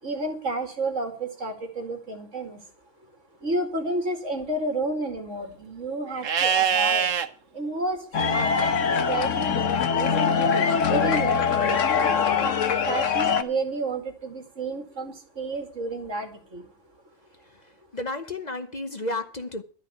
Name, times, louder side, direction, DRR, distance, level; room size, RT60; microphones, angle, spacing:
voice 1, 0.0-2.6 3.4-7.2 7.5-8.7 9.1-10.3 10.9-12.5 12.8-16.7, right 2 dB, 70° right, 2.7 m, -31 dB
Livestock farm animals working animals, 6.2-7.3 10.1-11.1, right 7 dB, 90° right, 1.3 m, -25 dB
sound 1, 8.1-13.4, left 6 dB, 75° left, 1.4 m, -23 dB
voice 2, 17.6-19.6, left 2 dB, 35° left, 1.0 m, -33 dB
12.5 x 5.8 x 9.0 m
omnidirectional pair, 1.3 m